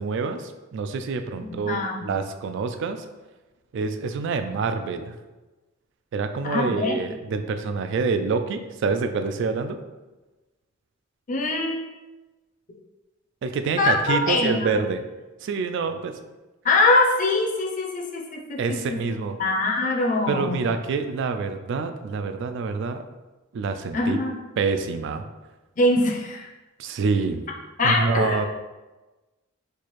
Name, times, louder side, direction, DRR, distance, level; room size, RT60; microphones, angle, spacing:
voice 1, 0.0-3.0 3.7-5.2 6.1-9.8 13.4-15.0 15.4-16.1 18.6-19.4 20.3-23.0 23.5-24.2 24.6-25.2 26.8-27.5 27.8-28.5, right 4 dB, 60° right, 8 dB, 0.3 m, -26 dB
voice 2, 1.4-2.0 6.4-7.0 11.3-11.8 13.8-14.8 16.6-19.0 19.4-20.6 23.9-24.4 25.8-26.5 27.8-28.5, left 2 dB, 40° left, 0 dB, 0.6 m, -23 dB
4.4 x 2.4 x 3.0 m, 1.1 s
head